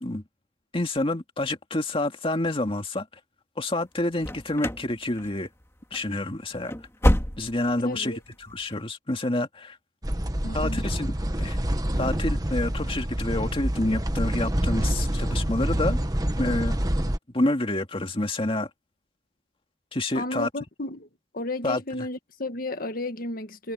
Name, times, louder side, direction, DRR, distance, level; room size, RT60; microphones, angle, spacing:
voice 1, 0.7-3.1 3.6-5.5 5.9-6.7 7.4-8.1 8.5-9.8 10.5-11.1 11.4-11.6 12.0-16.0 16.4-18.7 19.9-20.5 21.6-21.8, left 2 dB, 30° left, 2.3 m, -28 dB
sound 1, 4.2-4.9 5.2-5.6 5.9-6.1 6.5-7.8 8.1-8.2 8.7-8.8, equal, 15° left, 2.1 m, -26 dB
voice 2, 7.8-8.2 10.4-10.8 20.1-21.1 21.3-23.7, left 2 dB, 55° left, 1.7 m, -33 dB
sound 2, 10.0-17.2, equal, 20° right, 1.4 m, -27 dB
head